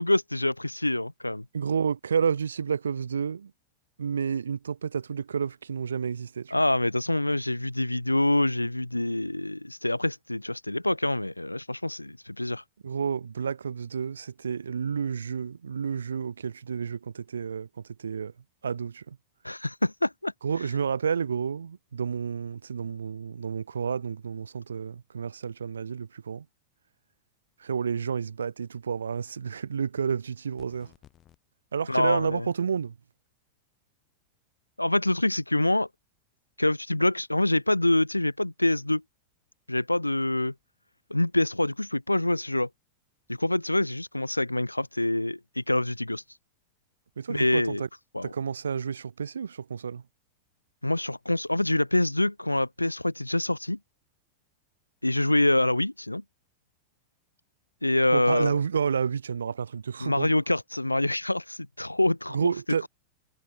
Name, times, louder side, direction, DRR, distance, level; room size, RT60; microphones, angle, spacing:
voice 1, 0.0-1.5 6.5-12.6 19.4-20.3 31.9-32.5 34.8-35.9 36.6-39.0 39.7-40.5 41.1-42.7 43.3-46.2 47.3-47.8 48.1-48.3 50.8-53.8 55.0-56.2 57.8-58.6 60.0-62.5, left 1 dB, 85° left, 0.4 m, -26 dB
voice 2, 1.5-3.5 4.0-6.6 12.8-17.7 18.0-18.3 18.6-19.2 20.4-26.4 27.6-30.9 31.7-32.9 47.2-47.9 48.2-50.0 58.1-60.3 62.3-62.9, right 6 dB, 70° right, 0.7 m, -30 dB
sound 1, 30.6-31.4, left 11 dB, 30° left, 8.0 m, -56 dB
figure-of-eight pair, 90°, 0 cm